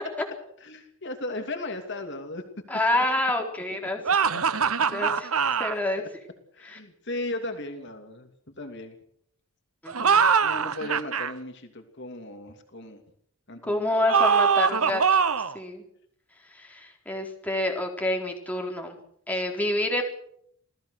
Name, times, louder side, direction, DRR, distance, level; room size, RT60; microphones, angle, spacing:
voice 1, 0.6-2.4 2.9-3.0 6.0-6.1 6.5-8.3 8.6-9.0 10.4-13.0 13.5-14.0 19.3-19.4, left 2 dB, 50° left, 5 dB, 2.8 m, -36 dB
voice 2, 2.7-4.0 4.9-5.3 5.6-6.0 6.6-6.8 9.8-10.3 13.7-15.2 15.5-15.8 16.5-19.0 19.3-20.0, left 1 dB, 5° left, 1 dB, 4.1 m, -28 dB
sound 1, 4.0-5.7 9.9-11.3 14.1-15.6, right 6 dB, 75° right, 1.1 m, -22 dB
27.5 x 18.0 x 6.6 m, 0.68 s
head